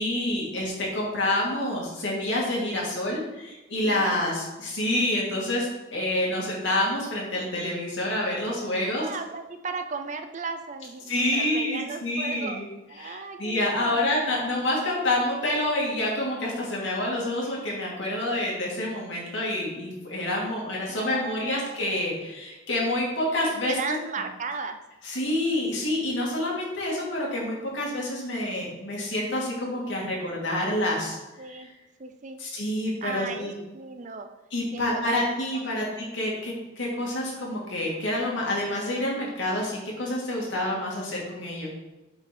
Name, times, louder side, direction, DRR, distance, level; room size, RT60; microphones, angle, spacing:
voice 1, 0.0-9.1 11.1-12.7 13.0-24.0 25.0-31.2 31.5-31.7 32.4-33.5 34.5-41.7, left 1 dB, 65° left, -3 dB, 2.6 m, -28 dB
voice 2, 3.8-4.2 8.8-12.6 12.9-14.1 20.9-21.8 23.6-24.8 31.4-31.7 32.0-32.4 33.0-34.3 34.7-35.3 35.5-35.9, right 4 dB, 40° right, 7 dB, 0.5 m, -36 dB
8.2 x 5.0 x 4.3 m, 1.1 s
head